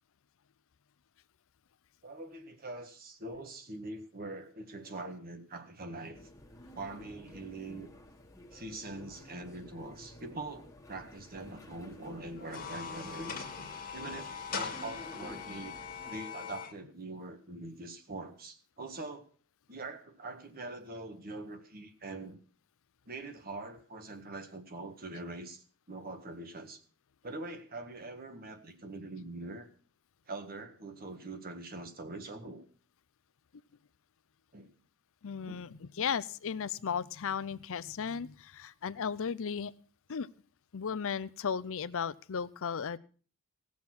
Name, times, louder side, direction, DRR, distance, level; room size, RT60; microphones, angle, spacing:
voice 1, 2.0-6.2 6.7-7.9 8.5-13.5 13.9-19.3 19.7-22.4 23.1-26.8 27.2-29.7 30.3-32.6 34.5-34.7 35.5-35.6, right 2 dB, 40° right, 6 dB, 1.7 m, -43 dB
sound 1, 6.1-16.1, left 1 dB, 15° left, 1.6 m, -53 dB
sound 2, 12.4-16.7, left 6 dB, 40° left, 1.9 m, -41 dB
voice 2, 35.2-39.7 40.1-40.3 40.7-43.0, left 6 dB, 60° left, 18 dB, 0.6 m, -35 dB
18.0 x 7.2 x 6.0 m, 0.42 s
head